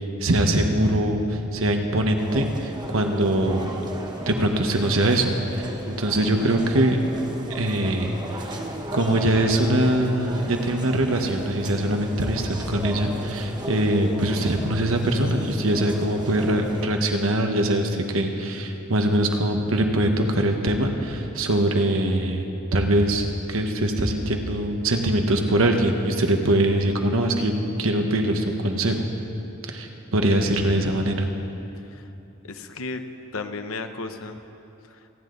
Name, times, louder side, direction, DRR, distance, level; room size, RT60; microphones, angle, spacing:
voice 1, 0.2-3.7 4.3-7.0 7.5-8.1 8.9-22.4 22.7-27.5 27.8-29.1 29.7-31.3, right 1 dB, 80° right, 4 dB, 1.3 m, -22 dB
sound 1, 2.2-16.9, right 1 dB, 20° right, 1.2 m, -36 dB
voice 2, 32.4-33.0 33.3-34.4 34.9-35.1, left 3 dB, 85° left, 8 dB, 0.9 m, -34 dB
27.5 x 9.7 x 4.0 m, 2.8 s
head